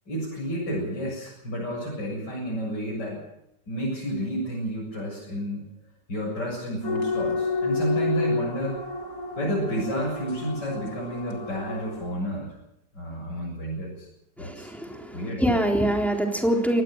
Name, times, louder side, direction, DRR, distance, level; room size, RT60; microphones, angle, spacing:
voice 1, 0.1-3.2 3.7-5.6 6.1-8.8 9.4-12.5 12.9-14.1 14.4-14.7 15.1-15.4, right 1 dB, 90° left, -5 dB, 8.4 m, -30 dB
sound 1, 6.8-12.1, left 4 dB, 65° left, 3.9 m, -30 dB
voice 2, 14.4-16.8, right 1 dB, ahead, 1 dB, 3.7 m, -24 dB
23.5 x 19.0 x 6.5 m, 0.84 s
omnidirectional pair, 1.8 m